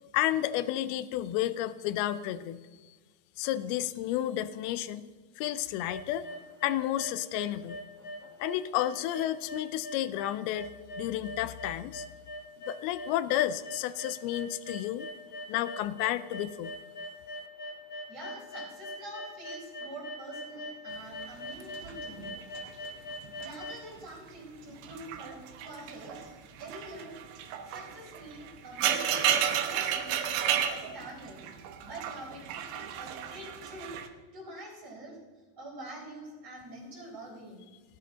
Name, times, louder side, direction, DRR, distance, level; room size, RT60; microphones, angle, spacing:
voice 1, 0.1-2.7 3.4-5.0 5.4-6.3 6.6-7.8 8.4-10.7 11.0-12.1 12.7-15.1 15.5-16.7, left 13 dB, 80° left, 15 dB, 2.3 m, -31 dB
sound 1, 5.7-23.8, left 1 dB, 30° left, 2.6 m, -41 dB
voice 2, 18.1-22.3 22.7-22.8 23.4-26.3 26.6-27.2 27.6-30.3 30.7-31.5 31.8-34.0 34.3-35.2 35.6-37.6, right 1 dB, 20° right, -9 dB, 4.8 m, -45 dB
sound 2, 21.2-23.6 23.9-24.3 24.8-34.1, right 9 dB, 85° right, 3.1 m, -33 dB
18.0 x 11.0 x 3.9 m, 1.4 s
omnidirectional pair, 4.8 m